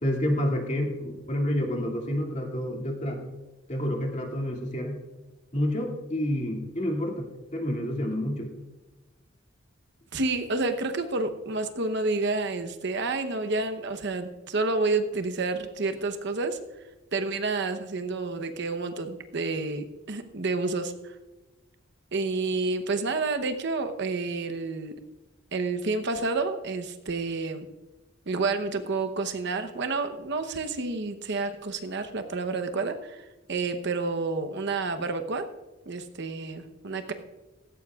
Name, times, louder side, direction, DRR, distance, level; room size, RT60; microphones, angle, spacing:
voice 1, 0.0-3.2 3.7-5.0 5.5-8.5, equal, 35° left, 0 dB, 2.3 m, -29 dB
voice 2, 10.1-16.6 17.1-20.9 22.1-24.9 25.5-27.7 28.3-35.5 35.9-37.1, right 3 dB, 60° right, 8 dB, 0.9 m, -29 dB
17.0 x 15.5 x 2.4 m, 1.1 s
head